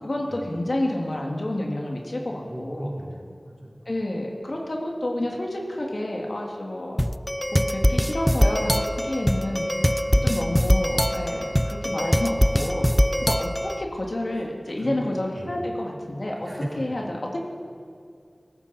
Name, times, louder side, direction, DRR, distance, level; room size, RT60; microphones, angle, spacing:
voice 1, 0.0-2.9 3.9-7.0 7.5-9.7 10.2-12.9 13.2-16.5 16.8-17.4, left 1 dB, 70° left, -1 dB, 2.3 m, -29 dB
voice 2, 2.4-3.8 9.9-10.3 12.7-13.0 14.8-15.7 16.4-17.0, right 1 dB, 20° right, -5 dB, 4.5 m, -37 dB
sound 1, 7.0-13.8, equal, 5° left, 0.4 m, -22 dB
18.5 x 14.5 x 4.3 m, 2.2 s
wide cardioid pair, 40°, 0 cm